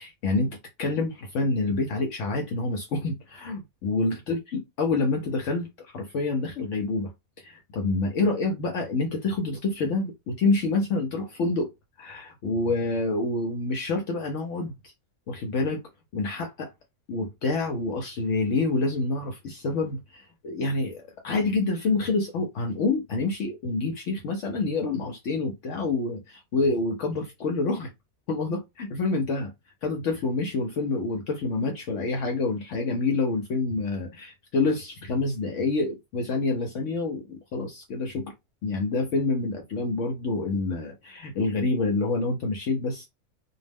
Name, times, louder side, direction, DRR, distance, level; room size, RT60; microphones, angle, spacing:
voice 1, 0.0-7.1 7.4-11.7 12.0-14.7 15.3-15.8 16.1-16.7 17.1-27.9 28.3-29.5 29.8-38.3 38.6-43.1, left 3 dB, 65° left, 0.8 m, -27 dB
2.4 x 2.0 x 3.3 m
omnidirectional pair, 1.5 m